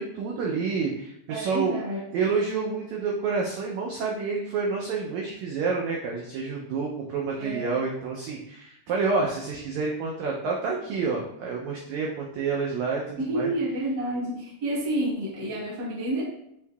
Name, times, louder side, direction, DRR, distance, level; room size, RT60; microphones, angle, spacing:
voice 1, 0.0-1.7 2.1-13.5, right 4 dB, 90° right, -1 dB, 1.6 m, -28 dB
voice 2, 1.3-2.0 7.4-7.7 13.3-16.2, right 1 dB, 55° right, -5 dB, 1.2 m, -29 dB
6.4 x 2.7 x 2.3 m, 0.79 s
omnidirectional pair, 3.9 m